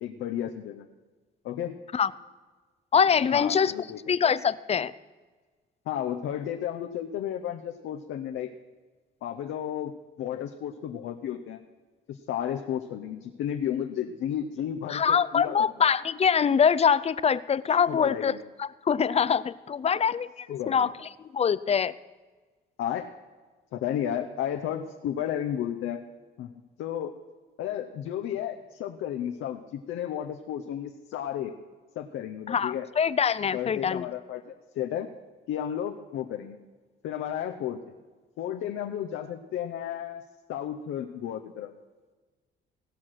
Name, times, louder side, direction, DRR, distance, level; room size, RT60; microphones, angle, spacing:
voice 1, 0.0-0.9 1.4-1.7 3.3-4.3 5.9-8.5 9.2-11.6 12.1-15.6 17.9-18.4 20.5-20.9 22.8-23.1 23.7-26.0 26.4-26.5 26.8-27.1 27.6-31.5 32.0-32.9 33.5-35.1 35.5-36.6 37.0-37.9 38.4-40.2 40.5-41.7, left 10 dB, 85° left, 4 dB, 0.7 m, -33 dB
voice 2, 2.9-3.7 4.1-4.9 14.9-20.9 21.3-21.9 32.5-34.1, left 7 dB, 30° left, 17 dB, 0.4 m, -24 dB
17.5 x 5.9 x 6.4 m, 1.4 s
cardioid pair, 90°, 20 cm